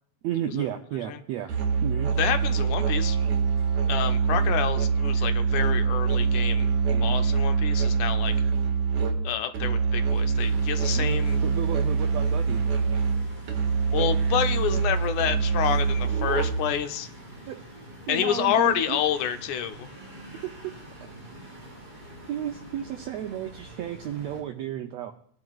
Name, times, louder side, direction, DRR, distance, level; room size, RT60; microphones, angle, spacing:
voice 1, 0.2-1.5 1.8-2.1 3.6-3.7 6.9-7.2 10.9-12.6 17.5-17.6 18.1-19.0 20.4-20.5 22.3-25.1, right 11 dB, 90° right, 6 dB, 1.5 m, -33 dB
Musical instrument, 1.5-16.8, right 5 dB, 70° right, 3.0 m, -24 dB
voice 2, 2.2-3.2 3.9-6.7 7.0-8.3 9.2-11.4 13.9-17.1 18.1-19.9, left 9 dB, 75° left, 8 dB, 2.0 m, -28 dB
sound 1, 10.3-24.4, right 1 dB, 15° right, 4.3 m, -46 dB
21.0 x 10.5 x 2.3 m, 0.62 s
omnidirectional pair, 3.7 m